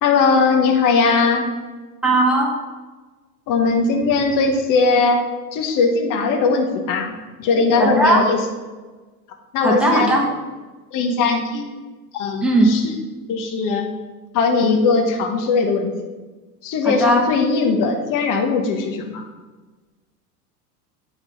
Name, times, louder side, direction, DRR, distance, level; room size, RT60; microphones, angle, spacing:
voice 1, 0.0-1.5 3.5-5.2 5.5-7.1 7.4-8.4 9.5-10.2 10.9-11.7 12.1-12.9 13.3-13.9 14.3-15.9 16.6-19.2, left 4 dB, 40° left, 3 dB, 1.3 m, -19 dB
voice 2, 2.0-2.5 7.8-8.2 9.6-10.2 12.4-12.7 16.8-17.3, right 1 dB, ahead, -1 dB, 1.6 m, -17 dB
9.0 x 4.0 x 5.2 m, 1.3 s
hypercardioid pair, 85°, 47 cm